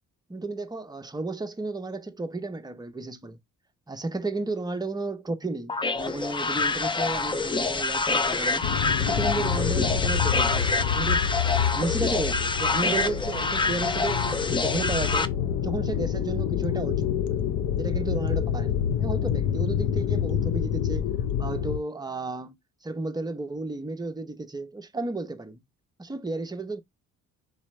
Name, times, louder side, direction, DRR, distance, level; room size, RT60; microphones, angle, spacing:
voice 1, 0.3-3.4 3.9-8.7 9.0-11.3 11.7-15.3 15.6-17.4 17.7-21.1 21.4-25.6 26.0-26.8, right 3 dB, 15° right, 0.8 m, -33 dB
sound 1, 5.7-15.3, left 3 dB, 15° left, 0.5 m, -26 dB
sound 2, 8.6-21.8, left 9 dB, 75° left, 0.6 m, -27 dB
4.1 x 3.2 x 3.2 m
cardioid pair, 90°, 30 cm